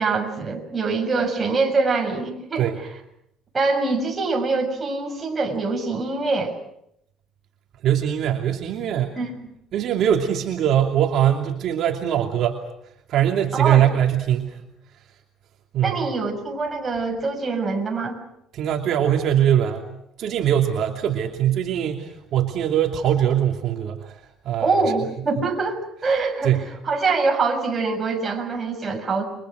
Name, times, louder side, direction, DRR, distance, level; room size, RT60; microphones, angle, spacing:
voice 1, 0.0-2.7 3.5-6.5 9.2-9.3 13.5-13.9 15.8-18.2 24.6-26.5 26.8-29.3, right 4 dB, 20° right, 2 dB, 6.8 m, -24 dB
voice 2, 7.8-9.1 9.7-12.6 13.1-14.6 15.7-16.1 18.5-19.8 20.2-24.8 26.4-26.7, right 10 dB, 60° right, 1 dB, 2.8 m, -22 dB
30.0 x 25.0 x 6.4 m, 0.77 s
cardioid pair, 130°, 0 cm